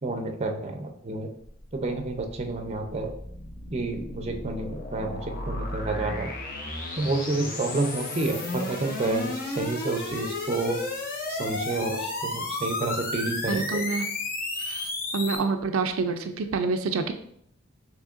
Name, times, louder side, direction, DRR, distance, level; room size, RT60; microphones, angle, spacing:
voice 1, 0.0-1.3 1.7-3.1 3.7-6.3 7.0-10.8 11.3-13.8, right 2 dB, 30° right, 4 dB, 0.5 m, -29 dB
sound 1, 1.4-15.4, left 2 dB, 45° left, 0.8 m, -33 dB
voice 2, 13.5-14.1 14.6-17.1, right 4 dB, 85° right, 7 dB, 0.4 m, -27 dB
6.4 x 3.0 x 2.5 m, 0.67 s
head